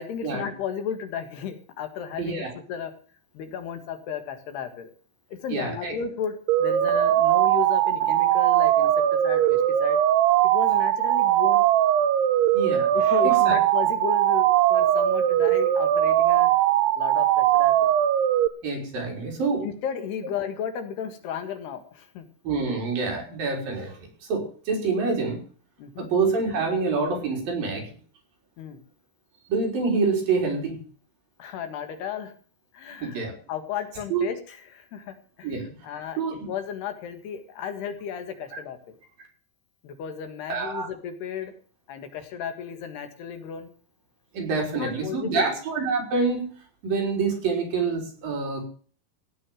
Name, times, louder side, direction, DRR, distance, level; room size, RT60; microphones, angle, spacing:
voice 1, 0.0-2.9 3.3-4.9 5.3-8.9 9.2-10.0 10.4-11.7 12.9-16.5 17.0-17.9 19.6-22.3 25.8-26.1 28.6-28.8 31.4-32.3 32.7-36.2 36.5-39.0 39.8-41.5 41.9-43.7 44.7-45.6, left 8 dB, 85° left, 7 dB, 3.8 m, -34 dB
voice 2, 2.2-2.5 5.5-5.9 9.3-9.4 12.5-13.6 18.6-19.6 22.4-24.0 24.3-25.4 26.0-27.9 29.5-30.8 33.0-33.3 34.1-34.3 35.4-35.6 36.2-36.4 40.5-40.9 44.3-46.4 46.8-48.7, right 4 dB, 60° right, 0 dB, 5.8 m, -26 dB
sound 1, 6.5-18.5, right 12 dB, 85° right, 2.9 m, -20 dB
16.5 x 6.5 x 9.1 m, 0.43 s
omnidirectional pair, 4.6 m